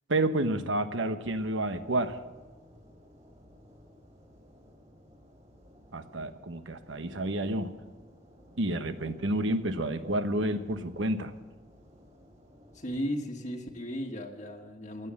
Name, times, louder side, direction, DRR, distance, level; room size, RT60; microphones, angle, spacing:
voice 1, 0.1-2.2 5.9-7.7 8.6-11.3, right 1 dB, 85° right, 9 dB, 1.1 m, -30 dB
sound 1, 1.2-13.0, equal, 35° right, 4.3 m, -57 dB
voice 2, 12.7-15.1, equal, 40° left, 1 dB, 1.4 m, -35 dB
17.0 x 11.0 x 7.6 m, 1.2 s
head